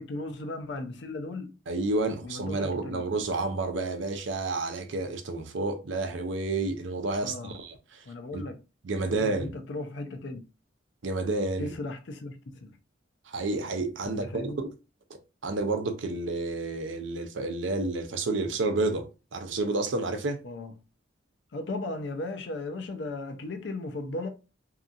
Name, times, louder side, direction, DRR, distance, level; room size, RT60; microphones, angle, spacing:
voice 1, 0.0-1.5 2.2-3.0 7.2-7.6 8.1-8.6 9.1-10.4 11.6-12.7 14.0-14.6 20.4-20.7 21.5-24.3, left 2 dB, 65° left, 0.5 m, -36 dB
voice 2, 1.7-8.1 8.3-8.4 8.8-9.5 11.0-11.8 13.3-14.7 15.1-20.4, right 2 dB, 75° right, 0.6 m, -30 dB
2.8 x 2.6 x 2.4 m
head